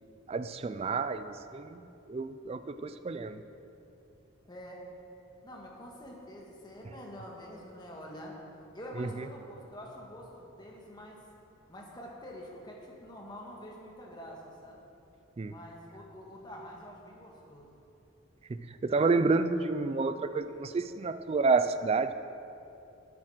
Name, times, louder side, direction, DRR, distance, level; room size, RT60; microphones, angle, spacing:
voice 1, 0.3-1.8 2.1-3.4 9.0-9.3 15.4-15.5 18.5-22.1, right 4 dB, 30° right, 11 dB, 0.3 m, -29 dB
voice 2, 4.5-4.8 5.4-8.4 8.7-11.2 11.7-14.8 15.4-17.7, equal, 20° left, -1 dB, 1.6 m, -46 dB
9.5 x 8.7 x 6.5 m, 2.8 s
head